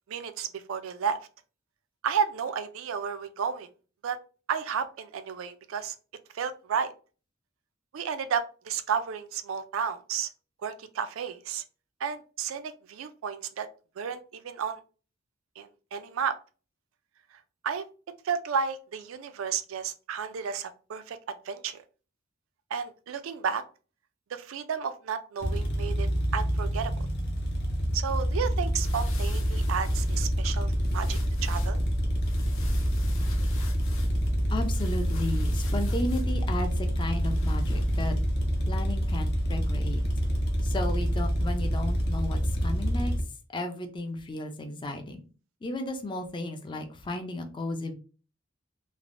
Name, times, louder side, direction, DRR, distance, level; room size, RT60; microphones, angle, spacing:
voice 1, 0.1-1.2 2.0-3.7 4.0-4.2 4.5-6.0 6.3-6.9 7.9-10.3 10.6-11.6 12.0-13.7 14.0-14.8 15.6-16.4 17.6-17.8 18.2-21.8 22.7-23.6 24.3-27.1 27.9-31.8, right 7 dB, 80° right, 11 dB, 0.4 m, -32 dB
sound 1, 25.4-43.2, equal, 55° left, 0.7 m, -27 dB
sound 2, 28.5-38.0, left 1 dB, 90° left, 0.6 m, -42 dB
voice 2, 34.5-38.1 38.7-40.0 40.6-43.1 43.5-45.2 45.6-47.9, left 2 dB, 25° left, 5 dB, 0.4 m, -34 dB
3.2 x 2.0 x 2.5 m, 0.36 s
head